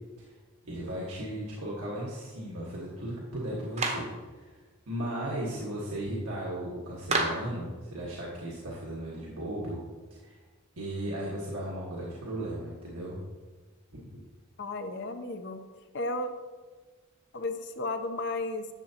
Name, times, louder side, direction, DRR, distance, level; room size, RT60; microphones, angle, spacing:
voice 1, 0.6-4.6 4.9-9.8 10.1-10.4 10.8-13.2 13.9-14.0, right 1 dB, 85° right, -5 dB, 1.5 m, -36 dB
Clapping, 3.8-4.1 7.1-7.5, right 2 dB, 30° right, 0.8 m, -28 dB
voice 2, 14.6-15.6 15.9-16.3 17.3-18.7, left 2 dB, 50° left, 7 dB, 0.7 m, -33 dB
10.5 x 7.0 x 2.8 m, 1.4 s
head